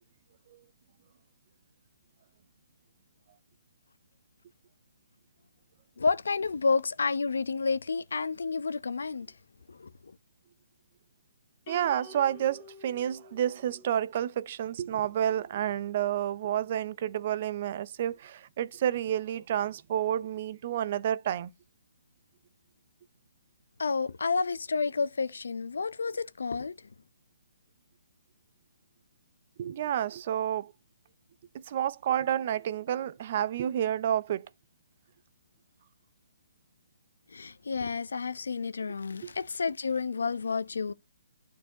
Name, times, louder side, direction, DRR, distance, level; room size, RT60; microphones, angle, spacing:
voice 1, 6.0-9.3 9.7-10.1 23.8-26.9 37.3-40.9, left 4 dB, 75° left, 0.7 m, -30 dB
sound 1, 11.7-14.1, left 3 dB, 35° left, 1.8 m, -50 dB
voice 2, 11.7-21.5 29.6-30.7 31.5-34.5 39.2-39.3, right 10 dB, 45° right, 0.5 m, -30 dB
12.0 x 4.6 x 2.9 m
hypercardioid pair, 145°, 0 cm